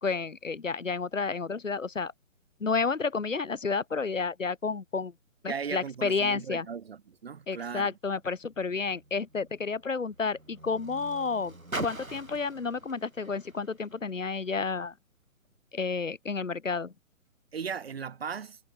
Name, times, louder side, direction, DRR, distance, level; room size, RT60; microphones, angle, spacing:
voice 1, 0.0-2.1 2.6-5.1 5.4-6.7 7.5-11.5 11.8-14.9 15.7-16.9, left 4 dB, 70° left, 1.8 m, -31 dB
voice 2, 5.5-7.9 17.5-18.6, right 6 dB, 50° right, 1.2 m, -37 dB
Car, 8.1-14.7 15.5-15.6, right 1 dB, 90° right, 3.9 m, -43 dB
figure-of-eight pair, 140°, 40 cm